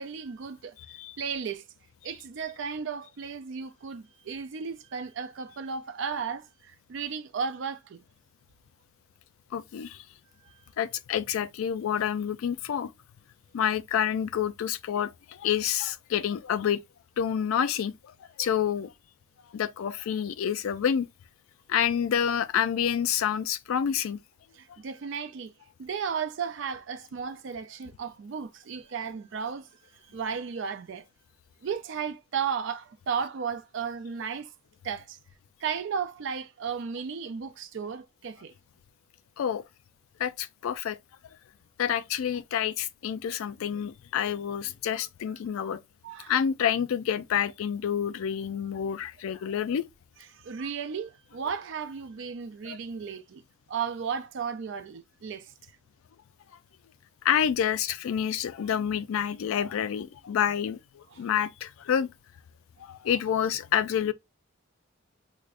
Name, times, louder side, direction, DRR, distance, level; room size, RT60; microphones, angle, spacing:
voice 1, 0.0-0.8 1.2-1.6 2.0-8.0 24.5-25.5 25.8-29.7 30.1-31.0 31.6-34.5 34.8-35.2 35.6-38.5 45.0-45.1 45.6-45.7 46.0-46.3 50.3-53.4 53.7-55.5 61.1-61.2, right 6 dB, 60° right, 0.4 m, -34 dB
voice 2, 9.5-10.0 10.8-12.9 13.5-16.8 17.2-17.9 18.4-18.9 19.5-21.1 21.7-24.2 39.4-39.6 40.2-41.0 41.8-45.8 46.3-49.9 52.6-52.8 57.2-62.1 62.8-64.1, left 8 dB, 75° left, 0.3 m, -28 dB
4.8 x 2.1 x 2.4 m
head